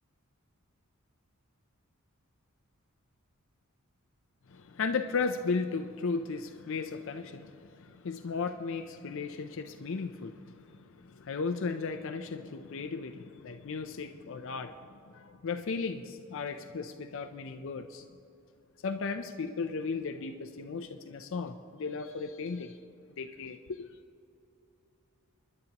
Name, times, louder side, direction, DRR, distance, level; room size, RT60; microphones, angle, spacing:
voice 1, 4.5-18.1 18.8-22.8 23.2-23.9, left 4 dB, 60° left, 7 dB, 0.5 m, -35 dB
29.0 x 10.5 x 2.9 m, 2.7 s
head